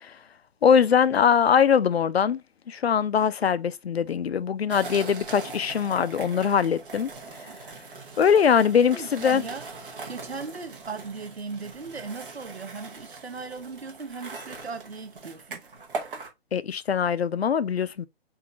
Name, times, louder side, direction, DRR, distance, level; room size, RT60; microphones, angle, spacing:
voice 1, 0.6-2.4 2.7-7.1 8.2-9.4 16.5-18.1, left 7 dB, 75° left, 0.5 m, -22 dB
sound 1, 4.7-16.3, right 3 dB, 60° right, 1.3 m, -41 dB
voice 2, 8.9-9.7 10.0-15.6, right 4 dB, 80° right, 1.0 m, -38 dB
3.9 x 2.7 x 3.4 m
figure-of-eight pair, 125°, 31 cm